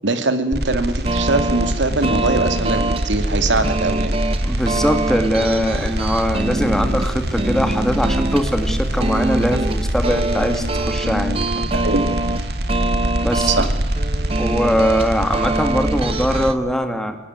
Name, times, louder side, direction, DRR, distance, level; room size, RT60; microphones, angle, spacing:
voice 1, 0.0-4.2 11.7-12.1 13.4-13.7, right 3 dB, 85° right, 9 dB, 2.3 m, -21 dB
sound 1, 0.5-16.5, right 1 dB, 60° right, 2.1 m, -24 dB
sound 2, 1.0-16.5, right 2 dB, 30° right, 0.8 m, -25 dB
voice 2, 4.4-11.7 13.2-13.7 14.4-17.2, equal, ahead, 7 dB, 2.0 m, -21 dB
sound 3, 5.7-11.0, left 1 dB, 80° left, 1.5 m, -35 dB
24.0 x 20.0 x 9.5 m, 0.97 s
head